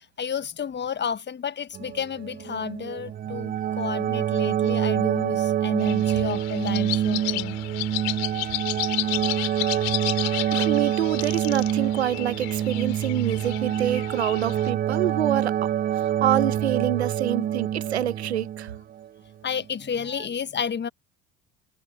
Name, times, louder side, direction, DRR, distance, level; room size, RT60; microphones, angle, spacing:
voice 1, 0.2-7.6 19.4-20.9, left 7 dB, 35° left, 1.4 m, -31 dB
sound 1, 1.7-19.1 20.1-20.2, right 10 dB, 30° right, 0.4 m, -26 dB
sound 2, 5.8-14.7, left 33 dB, 70° left, 3.7 m, -33 dB
voice 2, 10.5-18.7, right 11 dB, 90° right, 1.1 m, -27 dB
hypercardioid pair, 60°, 31 cm